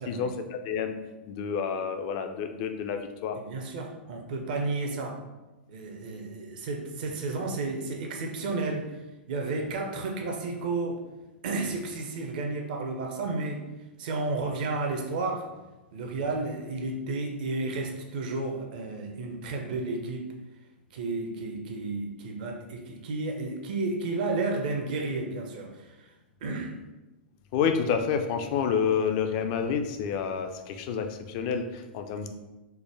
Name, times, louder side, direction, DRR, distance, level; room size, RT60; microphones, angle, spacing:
voice 1, 0.1-0.9 1.3-3.4 27.5-32.3, left 6 dB, 40° left, 6 dB, 0.4 m, -29 dB
voice 2, 3.4-5.2 5.7-8.9 9.3-11.0 11.4-13.6 14.0-15.5 15.9-20.3 20.9-26.1 26.4-26.7, right 3 dB, 55° right, 2 dB, 0.6 m, -32 dB
4.5 x 2.1 x 3.3 m, 1.1 s
figure-of-eight pair, 105°, 6 cm